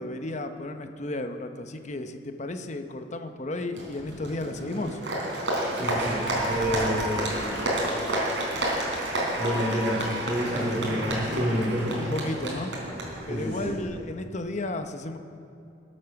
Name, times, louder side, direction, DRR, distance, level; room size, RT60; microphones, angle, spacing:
voice 1, 0.0-5.0 12.0-12.7 13.3-15.2, left 2 dB, 40° left, 7 dB, 0.8 m, -33 dB
Applause, 3.7-13.8, right 1 dB, 70° right, 3.9 m, -30 dB
voice 2, 5.7-7.3 9.4-12.0 13.3-13.7, equal, 35° right, -7 dB, 2.7 m, -29 dB
21.5 x 8.7 x 5.9 m, 2.7 s
head